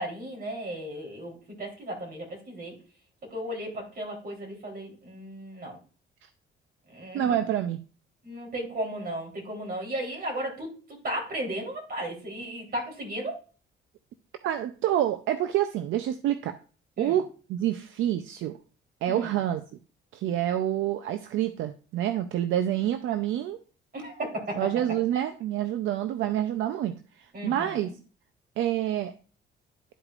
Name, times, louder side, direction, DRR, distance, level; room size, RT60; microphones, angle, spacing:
voice 1, 0.0-2.8 3.3-5.8 6.9-7.4 8.2-13.4 17.0-17.2 19.1-19.3 23.9-24.7 27.3-27.8, right 1 dB, 50° right, 0 dB, 3.5 m, -35 dB
voice 2, 7.1-7.8 14.4-16.5 17.0-18.6 19.0-19.6 20.1-23.6 24.6-27.9 28.6-29.1, right 11 dB, 80° right, 9 dB, 0.5 m, -27 dB
12.0 x 4.8 x 2.5 m, 0.37 s
cardioid pair, 90°, 20 cm